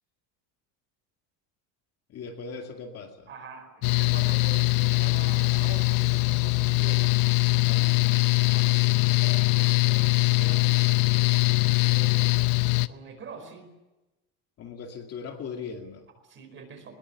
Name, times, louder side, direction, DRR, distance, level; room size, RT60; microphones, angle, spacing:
voice 1, 2.1-3.3 7.6-8.2 14.6-16.1, left 5 dB, 35° left, 3 dB, 2.3 m, -39 dB
voice 2, 3.3-7.2 8.4-12.2 12.7-13.7 16.2-17.0, right 5 dB, 30° right, 7 dB, 4.6 m, -45 dB
Mechanical fan, 3.8-12.9, left 24 dB, 55° left, 0.8 m, -22 dB
21.5 x 20.0 x 9.9 m, 1.1 s
cardioid pair, 170°, 42 cm